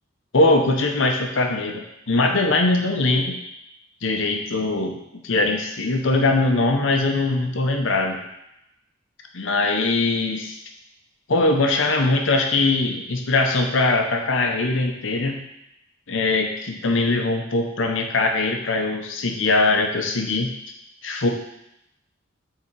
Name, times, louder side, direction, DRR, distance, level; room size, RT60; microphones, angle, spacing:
voice 1, 0.3-3.4 4.0-8.2 9.3-10.6 11.3-15.4 16.1-20.5 21.0-21.3, left 2 dB, 80° left, 3 dB, 0.8 m, -21 dB
5.8 x 3.8 x 4.6 m, 0.82 s
head